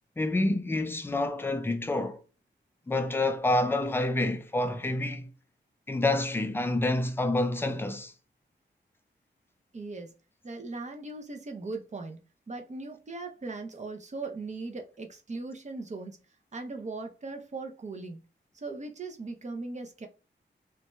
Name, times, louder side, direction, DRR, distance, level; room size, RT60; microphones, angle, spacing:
voice 1, 0.2-2.2 2.9-5.3 5.9-8.1, left 2 dB, 10° left, 0.4 m, -28 dB
voice 2, 9.7-10.1 10.4-12.2 12.5-16.2 16.5-18.2 18.5-20.1, right 3 dB, 40° right, 0.6 m, -39 dB
2.6 x 2.2 x 3.1 m
wide cardioid pair, 115°, 19 cm